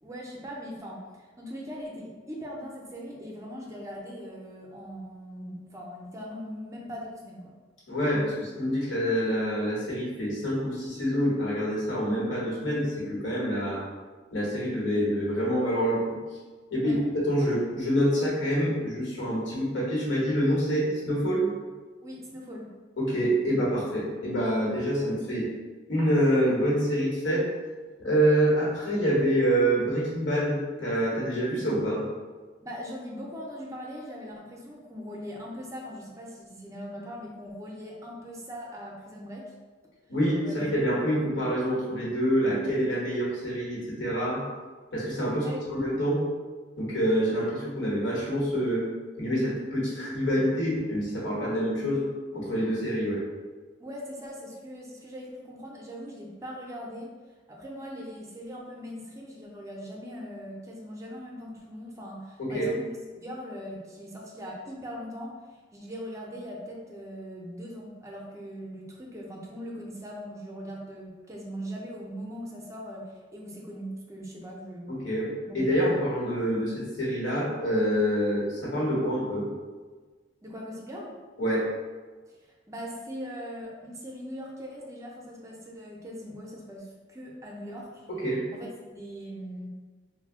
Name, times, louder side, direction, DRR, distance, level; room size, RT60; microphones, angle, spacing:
voice 1, 0.0-7.5 16.8-17.0 17.4-17.5 22.0-22.7 32.6-39.5 40.4-40.6 45.3-45.6 53.8-57.1 57.5-62.9 63.2-65.4 65.7-74.9 75.5-75.9 80.4-81.1 82.3-82.4 82.7-88.0 88.5-89.7, equal, 15° right, -2 dB, 0.4 m, -40 dB
voice 2, 7.9-13.9 14.3-16.2 16.7-17.0 17.2-21.5 23.0-25.5 25.9-27.5 28.0-32.1 40.1-44.4 44.9-45.4 45.7-46.2 46.8-48.8 49.2-52.0 52.3-53.2 62.4-62.7 74.9-79.5 81.4-81.7 88.1-88.4, equal, 80° left, -5 dB, 1.0 m, -26 dB
2.6 x 2.0 x 3.5 m, 1.4 s
head